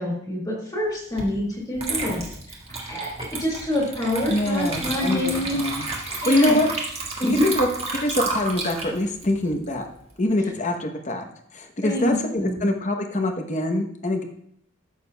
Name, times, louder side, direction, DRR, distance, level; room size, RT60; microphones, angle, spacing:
voice 1, 0.0-2.6 2.9-5.6 6.2-6.6 7.2-7.5 11.8-12.7, left 1 dB, 20° left, -4 dB, 2.0 m, -26 dB
Water / Liquid, 1.2-1.3 1.7-10.3, right 3 dB, 30° right, 1.5 m, -31 dB
voice 2, 4.3-6.7 7.4-7.7 8.0-9.9 10.2-14.2, left 1 dB, 35° left, 5 dB, 0.9 m, -24 dB
14.0 x 6.7 x 2.3 m, 0.72 s
head